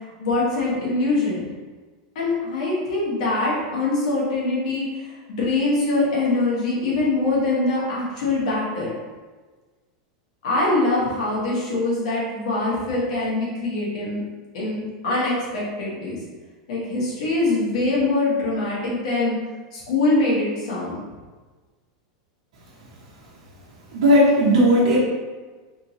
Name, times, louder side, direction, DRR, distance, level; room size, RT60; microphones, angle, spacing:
voice 1, 0.2-1.5 2.1-4.9 5.3-8.9 10.4-14.2 14.5-16.2 16.7-19.4 19.7-21.0, left 2 dB, 75° left, -5 dB, 1.4 m, -23 dB
voice 2, 23.9-25.0, equal, 75° right, -7 dB, 0.9 m, -16 dB
3.6 x 2.6 x 2.9 m, 1.3 s
supercardioid pair, 150°, 3 cm